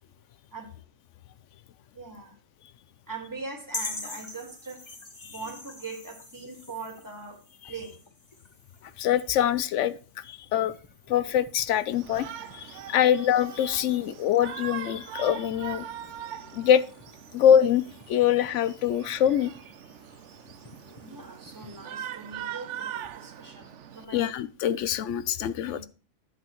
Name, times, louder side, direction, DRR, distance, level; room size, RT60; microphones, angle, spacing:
voice 1, 1.9-2.4 3.1-4.9 5.2-8.0 21.0-24.3 25.7-25.9, right 4 dB, 15° right, 1.7 m, -41 dB
sound 1, 3.7-23.3, left 2 dB, 25° left, 1.0 m, -46 dB
voice 2, 9.0-10.0 10.2-10.7 11.1-12.3 12.5-15.9 16.5-16.8 17.3-19.5 24.1-25.9, left 9 dB, 80° left, 0.9 m, -24 dB
Shout, 11.9-24.1, right 10 dB, 80° right, 0.9 m, -41 dB
11.0 x 7.6 x 3.0 m
omnidirectional pair, 1.2 m